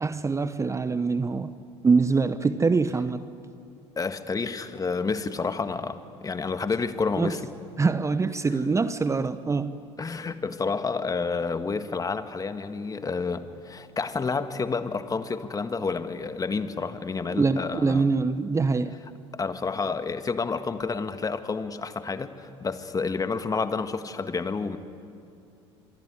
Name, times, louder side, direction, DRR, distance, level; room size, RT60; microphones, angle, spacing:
voice 1, 0.0-1.5 1.8-3.2 7.2-7.3 7.8-9.8 17.3-19.0, right 4 dB, 20° right, 0.9 m, -24 dB
voice 2, 4.0-7.4 10.0-18.1 19.3-24.8, left 4 dB, 25° left, 1.7 m, -29 dB
25.5 x 23.0 x 9.7 m
hypercardioid pair, 70°, 15 cm